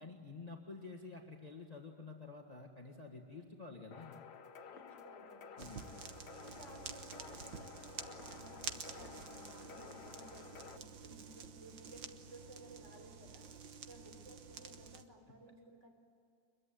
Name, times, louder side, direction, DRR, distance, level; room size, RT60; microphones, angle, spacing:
voice 1, 0.0-4.2 5.6-5.9, left 3 dB, 20° left, 1 dB, 1.9 m, -50 dB
sound 1, 3.9-10.8, left 6 dB, 65° left, 1.5 m, -53 dB
voice 2, 4.7-5.9 6.4-13.5 13.9-15.9, right 1 dB, 40° right, 2 dB, 4.3 m, -57 dB
sound 2, 5.6-15.0, right 7 dB, 80° right, 1.9 m, -50 dB
24.5 x 22.0 x 9.3 m, 2.4 s
omnidirectional pair, 2.0 m